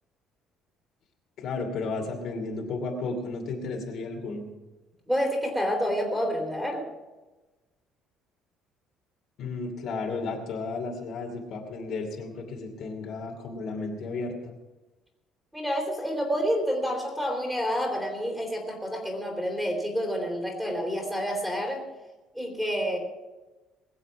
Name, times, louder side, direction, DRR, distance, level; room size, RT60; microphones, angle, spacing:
voice 1, 1.4-4.5 9.4-14.5, left 3 dB, 55° left, 1 dB, 2.7 m, -33 dB
voice 2, 5.1-6.8 15.5-21.9 22.3-23.0, equal, 5° right, 1 dB, 3.5 m, -28 dB
21.0 x 7.6 x 5.9 m, 1.2 s
cardioid pair, 130°, 0 cm